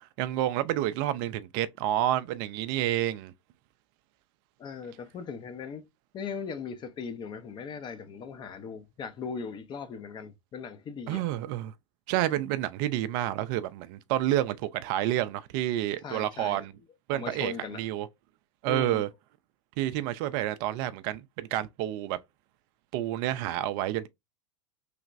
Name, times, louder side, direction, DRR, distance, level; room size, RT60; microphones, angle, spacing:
voice 1, 0.0-3.3 11.1-11.7 12.1-16.7 17.1-18.1 18.6-19.1 19.8-22.2 22.9-24.1, right 13 dB, 50° right, 0.4 m, -29 dB
voice 2, 4.6-5.8 6.1-11.2 16.0-16.6 17.1-17.8 18.6-19.0, left 6 dB, 30° left, 0.6 m, -39 dB
3.3 x 2.9 x 2.4 m
hypercardioid pair, 90°, 16 cm